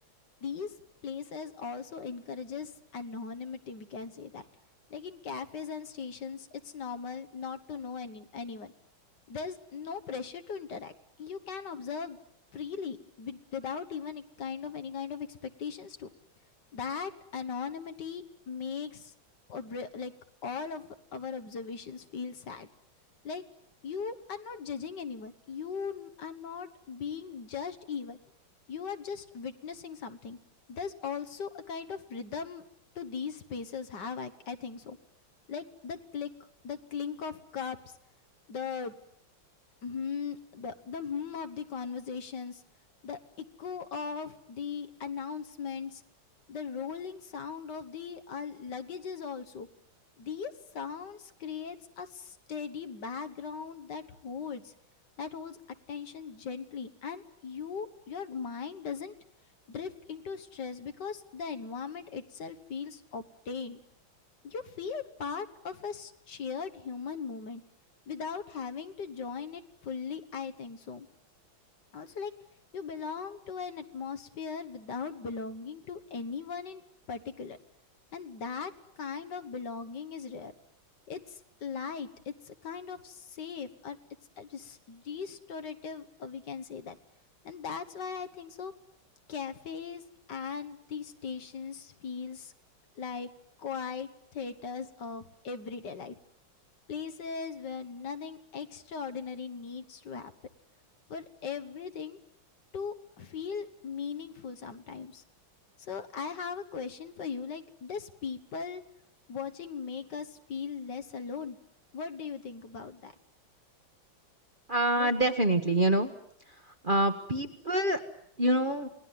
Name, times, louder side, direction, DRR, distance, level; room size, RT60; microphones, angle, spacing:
voice 1, 0.4-0.8 1.0-4.5 4.9-8.7 9.3-10.9 11.2-12.2 12.5-16.1 16.7-19.1 19.5-20.1 20.4-22.7 23.2-23.4 23.8-28.2 28.7-30.4 30.7-32.7 33.0-35.0 35.5-36.3 36.6-37.9 38.5-39.0 39.8-42.6 43.0-46.0 46.5-49.7 50.2-54.7 55.2-55.6 55.9-59.1 59.7-63.8 64.4-67.6 68.1-71.1 71.9-72.3 72.7-76.8 77.1-77.6 78.1-80.5 81.1-84.0 84.4-87.0 87.4-88.7 89.3-92.5 93.0-93.3 93.6-96.2 96.9-100.3 101.1-102.2 102.7-105.2 105.8-108.8 109.3-111.6 111.9-113.1 115.0-115.1, left 6 dB, 60° left, 10 dB, 1.9 m, -39 dB
voice 2, 114.7-116.1 116.5-118.0 118.4-118.9, right 1 dB, 30° right, 7 dB, 1.3 m, -26 dB
28.0 x 19.5 x 9.5 m, 0.71 s
omnidirectional pair, 2.1 m